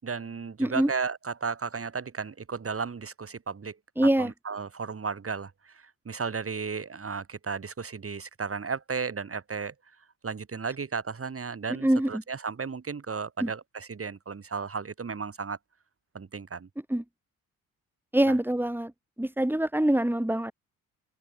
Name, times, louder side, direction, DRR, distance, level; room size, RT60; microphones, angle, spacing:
voice 1, 0.0-3.8 4.2-9.7 10.2-15.6 16.1-16.7, right 5 dB, 30° right, 7.5 m, -34 dB
voice 2, 0.6-0.9 4.0-4.3 11.7-12.2 13.4-13.5 16.9-17.0 18.1-18.9 19.2-20.5, right 1 dB, 5° right, 6.6 m, -24 dB
open air
figure-of-eight pair, 50°, 43 cm